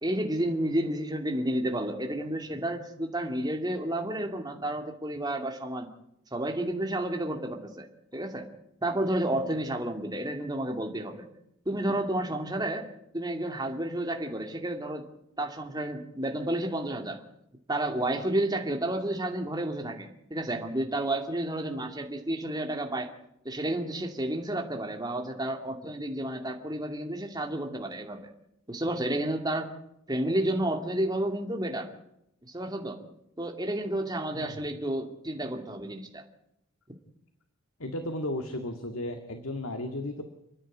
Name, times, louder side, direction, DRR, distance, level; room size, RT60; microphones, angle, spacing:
voice 1, 0.0-5.9 6.3-7.9 8.1-8.5 8.8-11.3 11.7-12.9 13.1-15.0 15.4-17.2 17.7-23.1 23.4-28.3 28.7-29.7 30.1-31.9 32.5-33.0 33.4-36.2, right 1 dB, 20° right, 3 dB, 2.6 m, -31 dB
voice 2, 37.8-40.2, left 1 dB, 90° left, 6 dB, 2.0 m, -34 dB
29.5 x 10.0 x 9.6 m, 0.80 s
head